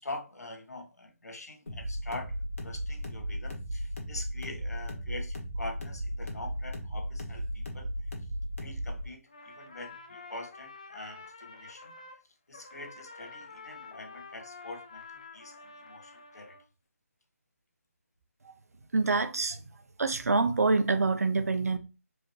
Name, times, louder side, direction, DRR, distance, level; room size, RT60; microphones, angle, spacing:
voice 1, 0.0-2.4 2.6-7.9 8.6-11.9 12.5-16.6, left 2 dB, 80° left, 1.3 m, -44 dB
sound 1, 1.7-9.0, equal, 60° left, 1.5 m, -36 dB
Trumpet, 9.3-12.2 12.5-16.6, left 4 dB, 25° left, 0.4 m, -48 dB
voice 2, 18.9-19.6 20.0-21.8, right 3 dB, 75° right, 0.7 m, -26 dB
4.7 x 2.7 x 3.1 m
hypercardioid pair, 180°, 8 cm